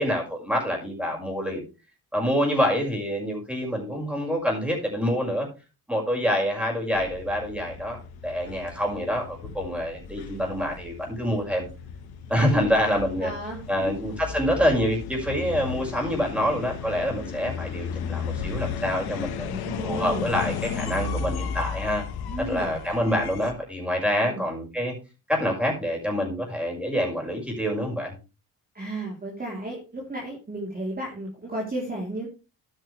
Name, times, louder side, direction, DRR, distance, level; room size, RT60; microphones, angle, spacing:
voice 1, 0.0-1.6 2.1-5.5 5.9-11.7 12.3-13.3 13.7-19.5 19.8-22.0 22.4-24.9 25.3-28.1, equal, 5° right, -1 dB, 5.9 m, -26 dB
sound 1, 6.9-23.5, left 6 dB, 85° left, 1.6 m, -35 dB
voice 2, 13.2-14.0 19.5-20.3 22.3-22.7 24.3-24.4 28.7-32.3, right 1 dB, 25° right, -3 dB, 3.6 m, -33 dB
12.5 x 9.3 x 3.4 m, 0.31 s
cardioid pair, 100°, 37 cm